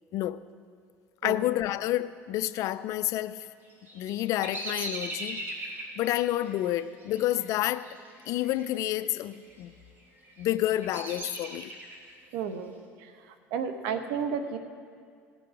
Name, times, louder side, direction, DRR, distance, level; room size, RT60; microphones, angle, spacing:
voice 1, 1.2-3.5 3.9-7.9 8.3-9.7 10.4-11.7, left 14 dB, 60° left, 0.4 m, -29 dB
Bird vocalization bird call bird song, 3.6-8.7 8.9-9.5 10.1-12.1, right 1 dB, 35° right, 2.3 m, -40 dB
voice 2, 12.3-13.1 13.5-14.6, right 6 dB, 80° right, 0.9 m, -32 dB
17.0 x 6.0 x 4.8 m
supercardioid pair, 105°, 6 cm